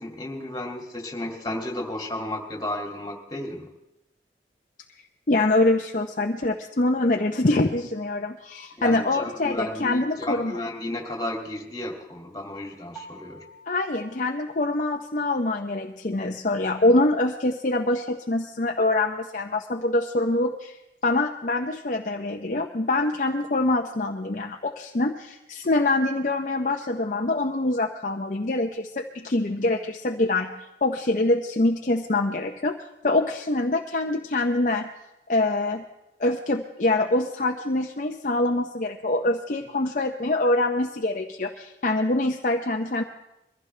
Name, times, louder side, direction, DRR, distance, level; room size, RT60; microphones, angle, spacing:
voice 1, 0.0-3.7 8.8-13.4, left 1 dB, 20° left, 1 dB, 2.4 m, -33 dB
voice 2, 5.3-10.5 13.7-20.8 21.0-30.5 30.8-32.8 33.0-34.9 35.3-35.8 36.2-43.0, left 2 dB, 50° left, 2 dB, 0.8 m, -24 dB
sound 1, 12.9-15.7, right 2 dB, ahead, 2.9 m, -49 dB
22.5 x 15.5 x 3.3 m, 0.91 s
head